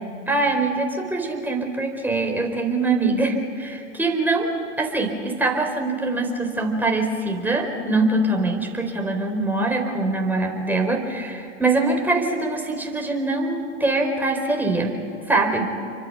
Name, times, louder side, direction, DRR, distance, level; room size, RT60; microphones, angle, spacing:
voice 1, 0.3-4.5 4.8-15.0 15.3-15.7, right 2 dB, 5° right, 2 dB, 4.5 m, -23 dB
28.5 x 24.5 x 5.7 m, 2.6 s
hypercardioid pair, 100°, 36 cm